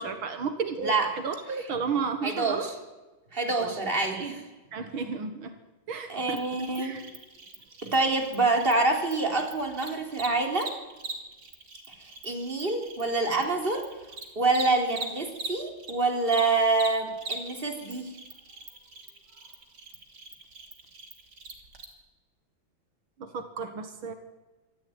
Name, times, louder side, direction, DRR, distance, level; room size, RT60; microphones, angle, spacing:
voice 1, 0.0-0.9 1.2-2.7 3.6-3.7 4.0-4.3 4.7-5.5 5.9-6.4 6.8-7.0 23.2-24.1, right 5 dB, 80° right, 8 dB, 2.5 m, -33 dB
voice 2, 2.2-2.8 3.3-4.4 6.1-7.0 7.8-10.7 12.0-13.8 14.4-18.1, right 3 dB, 25° right, 3 dB, 3.9 m, -26 dB
Cricket, 6.3-15.9 16.2-21.8, right 3 dB, 55° right, 3.7 m, -42 dB
25.5 x 14.0 x 9.5 m, 1.2 s
omnidirectional pair, 2.2 m